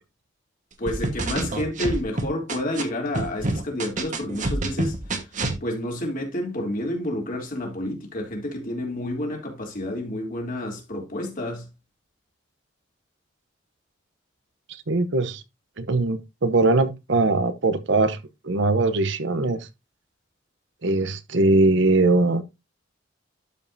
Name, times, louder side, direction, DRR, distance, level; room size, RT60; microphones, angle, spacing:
voice 1, 0.8-5.3 5.6-11.7, left 1 dB, 45° left, 3.1 m, -30 dB
sound 1, 0.9-2.8 3.1-5.6, right 2 dB, 40° right, 1.3 m, -27 dB
voice 2, 14.9-15.4 15.8-18.2 18.4-19.7 20.8-22.4, right 2 dB, 65° right, 0.8 m, -21 dB
12.0 x 5.3 x 2.7 m
head